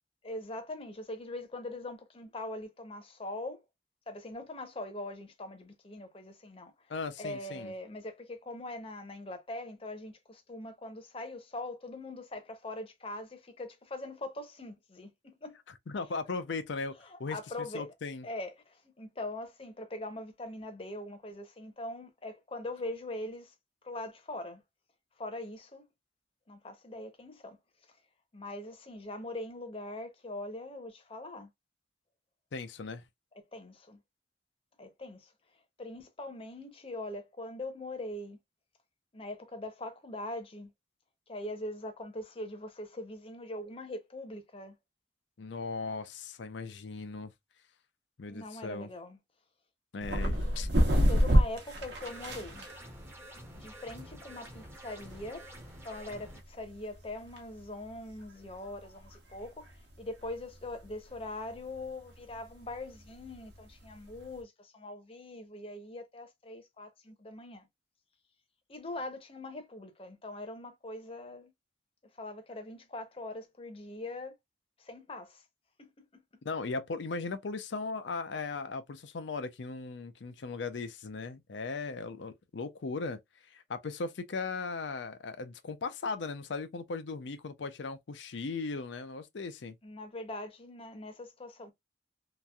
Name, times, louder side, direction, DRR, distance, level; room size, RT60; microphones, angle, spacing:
voice 1, 0.2-3.6 4.1-6.7 7.2-15.6 17.1-17.9 18.2-23.5 23.8-24.6 25.2-25.8 26.5-27.6 28.3-31.5 33.3-34.0 34.8-35.3 35.8-38.4 39.1-40.7 41.3-44.7 48.3-49.2 50.2-52.7 53.5-55.5 55.8-67.7 68.7-71.5 72.1-74.3 74.8-75.4 75.8-76.2 89.8-91.7, left 2 dB, 30° left, 0.7 m, -42 dB
voice 2, 6.9-7.7 15.9-18.2 32.5-33.0 45.4-47.3 48.2-48.9 49.9-50.7 76.4-83.2 83.5-89.8, left 4 dB, 90° left, 0.5 m, -38 dB
sound 1, 50.0-64.4, equal, 75° right, 0.9 m, -32 dB
sound 2, 52.0-56.4, equal, 15° right, 0.6 m, -49 dB
2.9 x 2.5 x 2.3 m
head